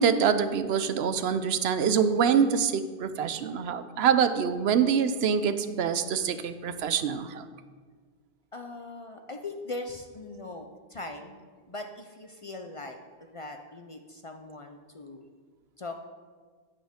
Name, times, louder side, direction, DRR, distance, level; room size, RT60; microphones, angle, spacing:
voice 1, 0.0-7.4, right 7 dB, 80° right, 11 dB, 0.8 m, -25 dB
voice 2, 8.5-11.4 11.7-15.3 15.8-16.0, left 2 dB, 40° left, 5 dB, 0.5 m, -40 dB
9.2 x 8.7 x 3.6 m, 1.5 s
omnidirectional pair, 1.1 m